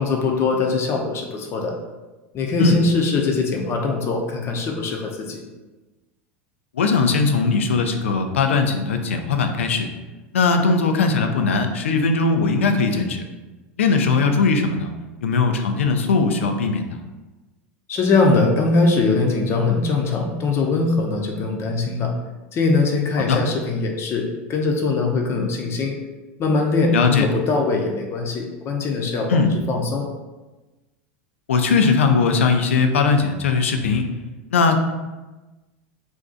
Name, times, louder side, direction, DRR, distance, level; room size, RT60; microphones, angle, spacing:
voice 1, 0.0-1.7 2.3-5.4 17.9-22.1 22.5-26.0 26.4-29.3 29.7-30.1, left 3 dB, 40° left, 1 dB, 0.6 m, -21 dB
voice 2, 6.7-9.9 10.3-13.2 13.8-14.9 15.2-16.9 23.2-23.4 26.9-27.3 29.3-29.5 31.5-34.1 34.5-34.8, left 4 dB, 90° left, 5 dB, 0.4 m, -19 dB
2.5 x 2.3 x 3.7 m, 1.2 s
hypercardioid pair, 95°, 7 cm